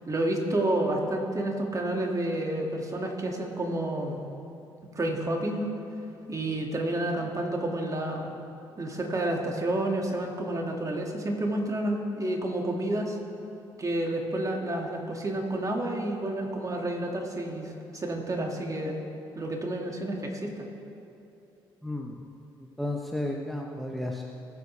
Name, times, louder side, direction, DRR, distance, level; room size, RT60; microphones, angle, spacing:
voice 1, 0.1-4.2 4.9-5.7 6.3-8.4 8.8-13.2 13.8-19.0 19.4-20.6, right 1 dB, 30° right, 1 dB, 2.3 m, -30 dB
voice 2, 21.8-22.1 22.8-24.3, left 1 dB, ahead, 0 dB, 1.1 m, -32 dB
21.0 x 8.0 x 3.5 m, 2.8 s
supercardioid pair, 60°, 11 cm